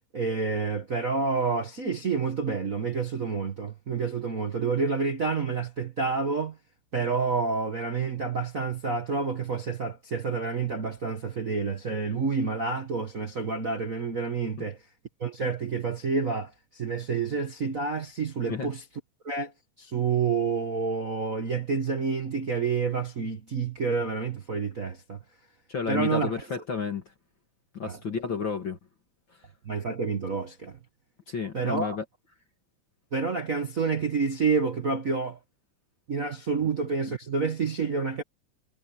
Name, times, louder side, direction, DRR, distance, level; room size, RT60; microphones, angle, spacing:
voice 1, 0.1-6.6 6.9-14.8 15.2-18.8 19.2-19.5 19.8-25.2 25.9-26.3 27.9-28.0 29.6-30.8 31.5-32.0 33.1-35.4 36.1-38.2, right 4 dB, 45° right, 1.0 m, -28 dB
voice 2, 25.7-27.0 27.7-28.8 31.3-32.0, left 5 dB, 40° left, 2.6 m, -31 dB
omnidirectional pair, 3.5 m